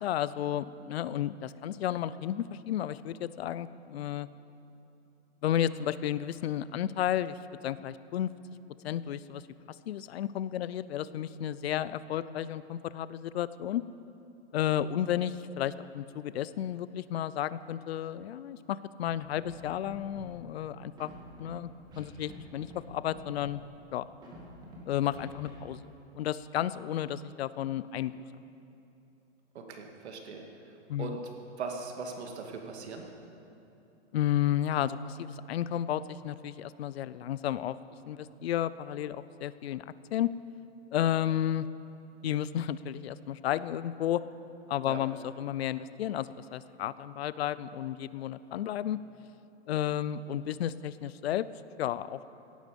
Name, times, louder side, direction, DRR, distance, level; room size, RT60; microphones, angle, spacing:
voice 1, 0.0-4.3 5.4-7.4 7.6-8.3 8.8-9.4 9.9-13.8 14.5-21.1 21.4-21.7 22.0-23.6 23.9-24.1 24.9-25.8 26.1-28.3 30.9-31.2 34.1-37.8 38.1-40.3 40.9-41.7 42.2-44.2 44.7-49.0 49.7-51.5 51.8-52.2, left 11 dB, 65° left, 16 dB, 0.6 m, -32 dB
Scratching (performance technique), 19.4-19.6 19.9-20.3 21.0-21.5 21.9-22.4 22.6-22.8 23.1-23.5 24.2-24.8 25.1-25.5, right 1 dB, 10° right, 2.2 m, -48 dB
voice 2, 29.5-30.4 31.0-31.2 31.6-33.1 44.8-45.0, right 5 dB, 70° right, 2 dB, 2.4 m, -39 dB
17.5 x 11.5 x 5.3 m, 2.9 s
hypercardioid pair, 165°, 35 cm